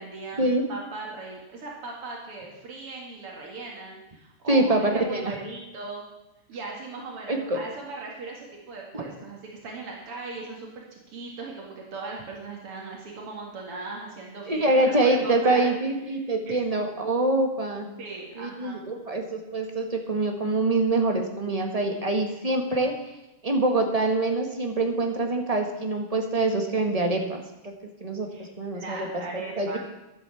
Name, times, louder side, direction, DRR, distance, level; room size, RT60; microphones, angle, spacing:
voice 1, 0.0-6.0 6.5-15.7 16.1-16.6 18.0-18.8 28.3-28.5 28.7-29.8, right 3 dB, 85° right, -1 dB, 3.0 m, -38 dB
voice 2, 4.5-5.4 7.3-7.6 8.9-9.1 14.5-17.9 18.3-22.9 23.4-27.7 28.0-29.8, right 2 dB, 20° right, 3 dB, 1.2 m, -25 dB
12.0 x 8.3 x 7.0 m, 0.96 s
omnidirectional pair, 2.4 m